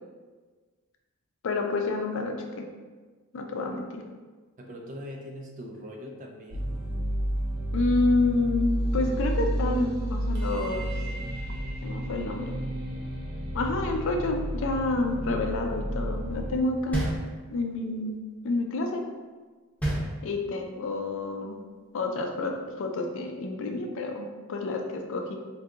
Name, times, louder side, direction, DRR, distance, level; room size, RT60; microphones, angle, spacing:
voice 1, 1.4-2.7 3.3-4.0 7.7-10.9 11.8-12.5 13.5-17.0 17.5-19.0 20.2-21.6 21.9-25.4, left 2 dB, 65° left, 3 dB, 0.4 m, -29 dB
voice 2, 4.6-6.7, equal, 40° right, 1 dB, 0.4 m, -41 dB
sound 1, 6.5-16.6, right 1 dB, 80° right, 0.6 m, -31 dB
sound 2, 16.9-17.8 19.8-20.7, right 1 dB, 5° left, 0.7 m, -30 dB
2.7 x 2.3 x 3.5 m, 1.4 s
head